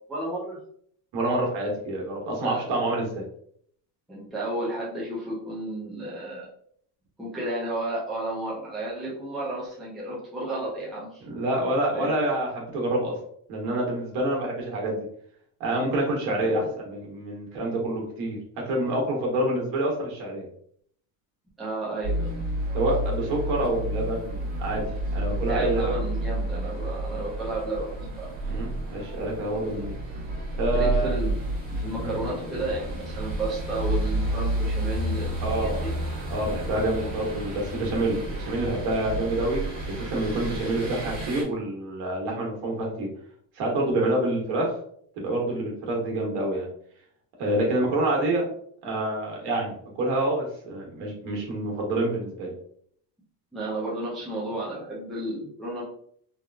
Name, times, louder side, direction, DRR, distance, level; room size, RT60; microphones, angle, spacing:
voice 1, 0.1-0.6 2.4-2.7 4.1-6.5 7.2-11.2 11.9-12.2 16.3-16.7 21.6-22.3 25.5-27.9 28.2-28.3 30.7-31.3 31.7-35.9 53.5-55.8, right 1 dB, ahead, -7 dB, 0.5 m, -32 dB
voice 2, 1.1-3.2 11.3-13.1 13.5-15.0 15.6-18.4 18.6-20.4 22.7-24.8 25.1-25.9 28.5-30.0 30.6-31.1 32.0-32.1 35.4-35.8 36.3-43.1 43.5-44.7 45.2-46.7 47.4-48.5 48.8-52.5, right 1 dB, 65° right, -2 dB, 1.3 m, -27 dB
sound 1, 22.0-41.4, right 1 dB, 20° right, 1.3 m, -30 dB
3.3 x 2.4 x 2.3 m, 0.64 s
cardioid pair, 160°, 46 cm